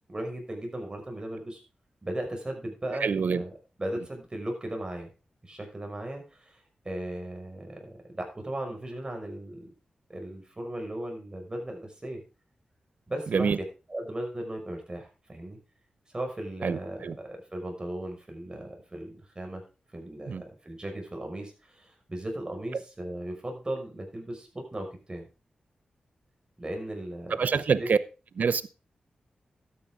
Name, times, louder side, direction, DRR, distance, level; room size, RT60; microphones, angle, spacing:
voice 1, 0.1-1.6 2.0-3.5 3.8-5.1 5.4-6.6 6.8-9.7 10.1-12.2 13.1-15.6 16.1-19.6 19.9-25.3 26.6-27.9, right 1 dB, 30° right, 5.7 m, -37 dB
voice 2, 3.0-3.4 13.3-13.6 16.6-17.1 20.3-20.4 27.4-28.0 28.4-28.7, right 5 dB, 70° right, 0.8 m, -26 dB
12.5 x 9.6 x 3.7 m
cardioid pair, 50°, 3 cm